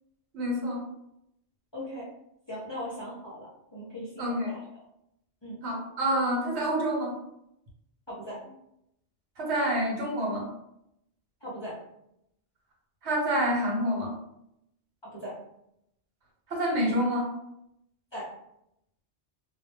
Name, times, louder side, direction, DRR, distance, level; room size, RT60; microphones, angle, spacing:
voice 1, 0.3-0.8 4.2-4.6 5.6-7.1 9.4-10.5 13.0-14.1 16.5-17.3, equal, 75° right, -2 dB, 1.1 m, -27 dB
voice 2, 1.7-2.1 2.5-4.6 5.4-5.6 8.1-8.5 11.4-11.7 15.1-15.3 18.1-18.3, equal, 30° left, -7 dB, 0.5 m, -39 dB
2.1 x 2.0 x 3.2 m, 0.79 s
omnidirectional pair, 1.1 m